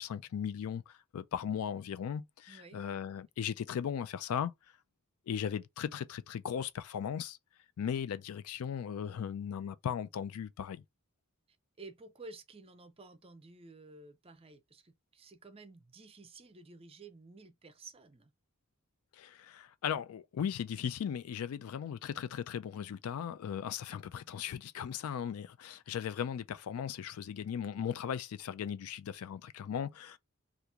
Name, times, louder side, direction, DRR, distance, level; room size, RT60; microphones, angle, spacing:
voice 1, 0.0-4.5 5.3-7.4 7.8-10.8 19.1-30.2, left 8 dB, 75° left, 0.3 m, -37 dB
voice 2, 2.5-2.8 11.8-18.3, right 3 dB, 25° right, 0.5 m, -52 dB
2.9 x 2.5 x 3.5 m
head